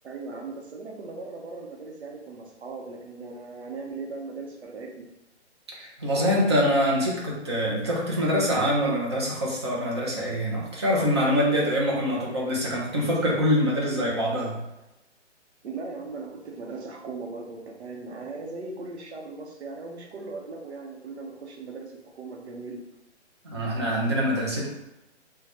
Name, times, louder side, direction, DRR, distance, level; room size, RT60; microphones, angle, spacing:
voice 1, 0.0-5.1 15.6-22.8, right 3 dB, 65° right, 1 dB, 0.9 m, -38 dB
voice 2, 5.7-14.6 23.4-24.7, equal, 25° right, -4 dB, 0.5 m, -25 dB
3.6 x 2.2 x 2.9 m, 0.95 s
hypercardioid pair, 165°, 35 cm